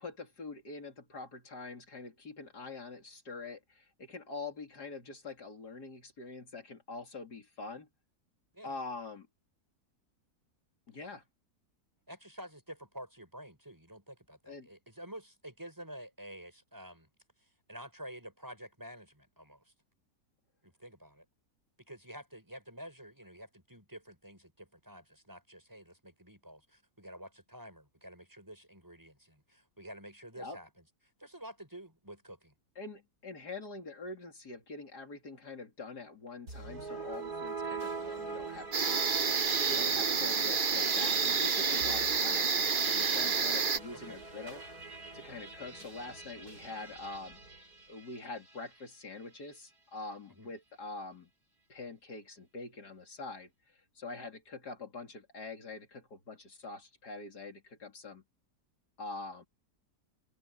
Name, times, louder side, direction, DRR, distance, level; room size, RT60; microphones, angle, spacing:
voice 1, 0.0-7.9 8.6-9.3 10.9-11.2 14.5-14.7 30.4-30.6 32.8-44.6 45.1-47.4 47.9-51.3 51.7-58.2 59.0-59.5, left 3 dB, 80° left, 3.7 m, -45 dB
voice 2, 12.1-17.1 17.7-19.7 20.6-21.2 21.9-30.7 31.2-32.5 44.0-44.2 50.3-50.5, equal, 10° right, 5.6 m, -49 dB
sound 1, 36.5-48.8, right 4 dB, 65° right, 6.8 m, -43 dB
sound 2, 38.7-43.8, right 5 dB, 35° right, 1.0 m, -29 dB
open air
omnidirectional pair, 1.7 m